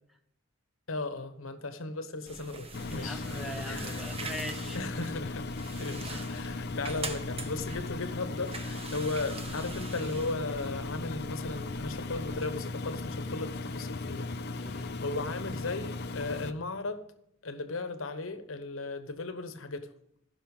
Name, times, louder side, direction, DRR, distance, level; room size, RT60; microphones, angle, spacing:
voice 1, 0.9-3.3 3.6-4.1 4.7-5.5 5.8-17.0 17.4-19.9, left 3 dB, 75° left, 10 dB, 1.1 m, -36 dB
sound 1, 2.3-12.5, right 3 dB, 30° right, 1.0 m, -44 dB
Engine, 2.7-16.5, left 3 dB, 55° left, 0.6 m, -37 dB
voice 2, 2.9-4.8 6.1-6.3 14.5-15.0, equal, ahead, 5 dB, 1.1 m, -42 dB
15.5 x 5.8 x 5.4 m, 0.73 s
head